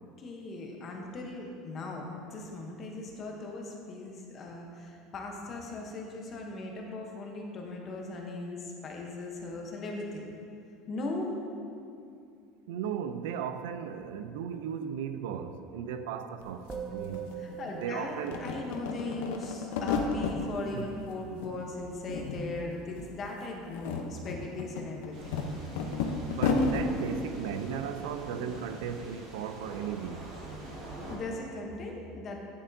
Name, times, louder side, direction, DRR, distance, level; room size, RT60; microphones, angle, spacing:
voice 1, 0.2-10.3 10.9-11.4 17.4-25.3 31.1-32.5, left 2 dB, 25° left, 1 dB, 0.8 m, -38 dB
voice 2, 12.7-17.3 17.7-18.5 20.7-20.9 26.2-30.3, right 8 dB, 85° right, 9 dB, 0.4 m, -36 dB
sound 1, 16.4-16.5 16.7-17.8 18.2-20.4 20.8-21.5 21.8-22.7 22.9-23.1 23.6-26.8, left 4 dB, 75° left, 0.6 m, -32 dB
Musical instrument, 16.7-26.2, right 7 dB, 15° right, 0.4 m, -46 dB
sound 2, 25.1-31.2, right 1 dB, 45° right, 1.7 m, -44 dB
9.0 x 6.9 x 2.6 m, 2.5 s
cardioid pair, 180°, 0 cm